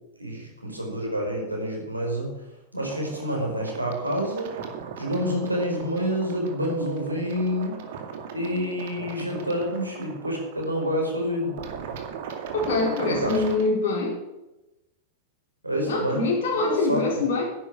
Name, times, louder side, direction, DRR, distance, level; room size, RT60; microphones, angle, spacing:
voice 1, 0.2-2.3 2.7-4.5 5.0-7.8 8.3-11.6 13.1-13.4 15.6-17.0, equal, 85° right, 0 dB, 4.9 m, -28 dB
sound 1, 2.7-13.6, right 7 dB, 55° right, 2.5 m, -38 dB
voice 2, 12.5-14.2 15.9-17.5, left 3 dB, 55° left, -1 dB, 4.2 m, -24 dB
11.0 x 10.0 x 8.8 m, 0.97 s
figure-of-eight pair, 90°, 0 cm